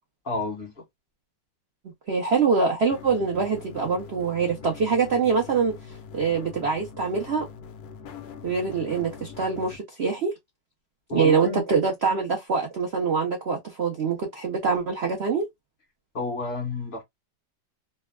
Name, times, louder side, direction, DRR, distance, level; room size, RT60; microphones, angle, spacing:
voice 1, 0.2-0.7 11.1-11.6 16.1-17.0, left 3 dB, 30° left, 1.5 m, -30 dB
voice 2, 2.1-5.8 6.1-7.5 8.4-10.3 11.1-15.5, right 5 dB, 80° right, 0.5 m, -24 dB
sound 1, 2.9-9.8, left 6 dB, 70° left, 1.0 m, -43 dB
3.2 x 2.2 x 2.2 m
omnidirectional pair, 2.1 m